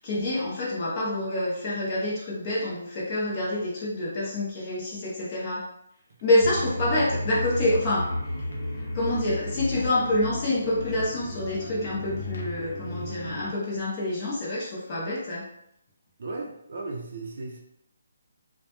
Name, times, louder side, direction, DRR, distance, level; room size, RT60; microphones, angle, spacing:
voice 1, 0.0-5.7 6.2-8.1 8.9-15.5, left 1 dB, 20° left, -6 dB, 0.6 m, -27 dB
sound 1, 6.4-13.5, left 1 dB, 60° left, 0.7 m, -33 dB
voice 2, 16.2-17.6, right 3 dB, 50° right, 0 dB, 0.4 m, -36 dB
2.2 x 2.1 x 2.8 m, 0.76 s
hypercardioid pair, 175°, 0 cm